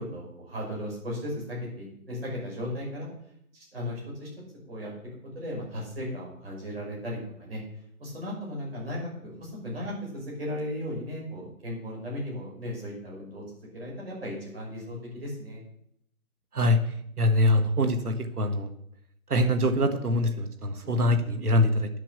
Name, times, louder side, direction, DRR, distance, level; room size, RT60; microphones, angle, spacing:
voice 1, 0.0-3.1 3.5-4.3 4.7-4.9 5.3-7.6 8.0-15.6 20.8-21.1, left 1 dB, 40° right, -3 dB, 6.1 m, -36 dB
voice 2, 17.2-18.7 19.3-21.9, left 1 dB, 85° right, 6 dB, 1.8 m, -24 dB
10.5 x 7.5 x 6.8 m, 0.72 s
hypercardioid pair, 175°, 44 cm